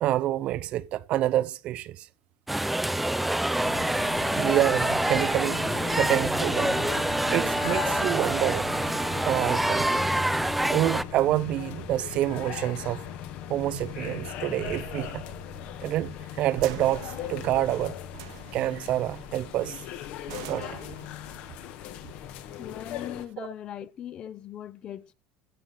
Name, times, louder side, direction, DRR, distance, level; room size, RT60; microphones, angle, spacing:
voice 1, 0.0-2.1 4.4-5.6 5.9-6.8 7.3-8.7 9.3-9.9 10.7-13.0 13.5-15.2 15.8-18.0 18.5-19.8 20.5-20.8 23.4-23.5, right 14 dB, 50° right, 0.6 m, -27 dB
sound 1, 2.5-11.0, right 1 dB, 5° right, 0.5 m, -26 dB
sound 2, 3.6-23.3, left 10 dB, 60° left, 1.6 m, -39 dB
sound 3, 11.3-23.2, right 12 dB, 85° right, 1.5 m, -47 dB
voice 2, 22.6-25.1, left 10 dB, 40° left, 0.9 m, -39 dB
15.5 x 5.5 x 6.5 m
supercardioid pair, 130°, 3 cm